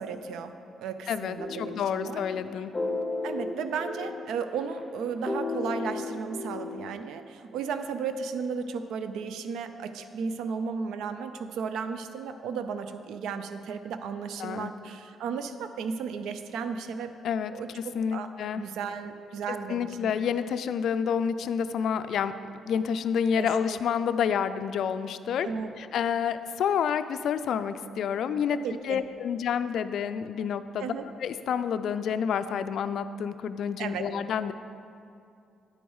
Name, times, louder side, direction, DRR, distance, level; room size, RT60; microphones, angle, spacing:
voice 1, 0.0-2.2 3.2-17.1 17.5-20.1 23.3-23.8 25.4-25.7 28.5-29.0 30.8-31.1 33.8-34.1, right 6 dB, 85° right, 9 dB, 0.4 m, -34 dB
voice 2, 1.1-2.7 14.4-14.7 17.2-18.6 19.7-22.3 22.7-25.5 25.8-28.6 28.8-30.9 31.2-34.5, left 7 dB, 70° left, 12 dB, 0.3 m, -29 dB
sound 1, 1.4-6.9, left 3 dB, 10° left, 1.0 m, -34 dB
9.2 x 4.6 x 5.4 m, 2.5 s
cardioid pair, 90°, 0 cm